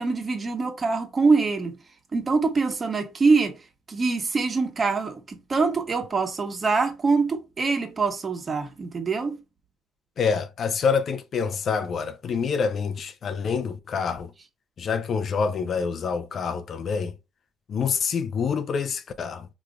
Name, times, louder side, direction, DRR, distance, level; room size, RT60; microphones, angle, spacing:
voice 1, 0.0-1.7 2.1-3.5 3.9-9.4, right 4 dB, 35° right, 1.3 m, -24 dB
voice 2, 10.2-14.3 14.8-17.1 17.7-19.5, left 5 dB, 55° left, 0.5 m, -26 dB
4.8 x 3.0 x 2.3 m
hypercardioid pair, 60°, 0 cm